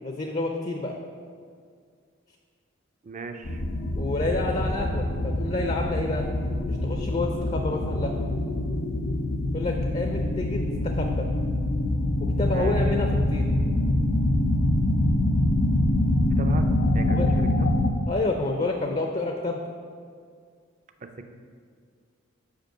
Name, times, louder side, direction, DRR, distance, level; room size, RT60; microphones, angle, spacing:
voice 1, 0.0-1.0 3.9-6.3 6.7-8.1 9.5-11.3 12.4-13.5 17.1-17.3 18.1-19.6, left 2 dB, 35° left, 3 dB, 0.4 m, -29 dB
voice 2, 3.0-3.6 12.5-12.8 16.4-16.7 16.9-17.7 21.0-21.3, right 3 dB, 35° right, 7 dB, 0.4 m, -37 dB
sound 1, 3.4-17.9, left 1 dB, 90° left, 0.6 m, -25 dB
5.4 x 5.1 x 6.5 m, 2.1 s
head